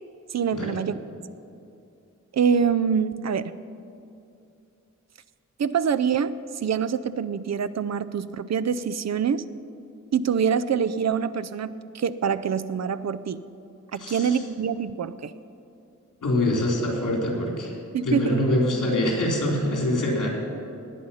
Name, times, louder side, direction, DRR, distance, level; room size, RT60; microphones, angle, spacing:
voice 1, 0.3-1.0 2.3-3.5 5.6-9.4 10.1-13.4 13.9-15.3 17.9-18.4, right 7 dB, 60° right, 13 dB, 0.5 m, -25 dB
voice 2, 14.0-14.4 16.2-17.8 18.0-20.3, left 1 dB, 85° left, -1 dB, 3.5 m, -24 dB
19.5 x 9.1 x 5.6 m, 2.7 s
wide cardioid pair, 95°, 31 cm